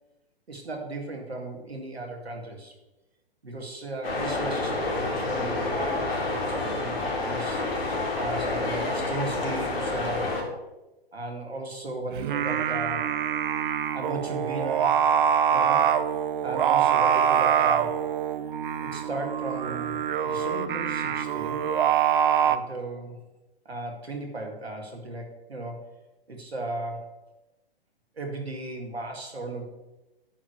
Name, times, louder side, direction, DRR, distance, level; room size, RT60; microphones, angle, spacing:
voice 1, 0.5-2.7 3.4-7.6 8.2-10.3 11.1-13.1 13.9-15.0 15.5-15.9 16.4-18.0 18.8-21.8 22.4-23.2 23.7-25.8 26.3-27.1 28.2-29.6, right 2 dB, 85° right, 2 dB, 2.2 m, -36 dB
sound 1, 4.0-10.4, left 2 dB, 70° left, 3.3 m, -28 dB
Singing, 12.1-22.6, right 9 dB, 55° right, 0.6 m, -24 dB
9.9 x 4.9 x 6.6 m, 1.0 s
figure-of-eight pair, 120°, 31 cm